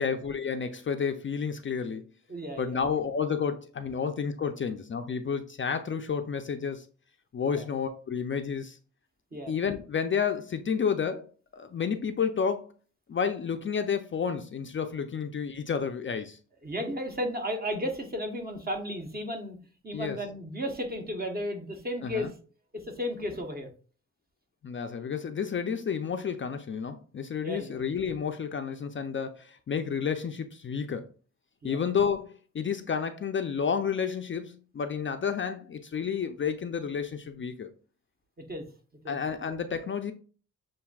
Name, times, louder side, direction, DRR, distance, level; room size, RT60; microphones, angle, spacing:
voice 1, 0.0-2.0 2.6-6.9 7.3-8.8 9.5-11.3 11.5-12.7 13.1-16.4 19.9-20.2 22.0-22.3 24.6-31.1 31.6-37.7 39.1-40.1, left 6 dB, 40° left, 0.4 m, -31 dB
voice 2, 2.3-2.8 7.5-7.7 9.3-9.5 16.6-19.6 19.8-22.3 22.7-23.7 27.4-27.8 31.6-31.8 38.5-38.7 39.0-39.2, equal, 30° right, 1.0 m, -34 dB
6.8 x 2.6 x 2.3 m
cardioid pair, 80°, 31 cm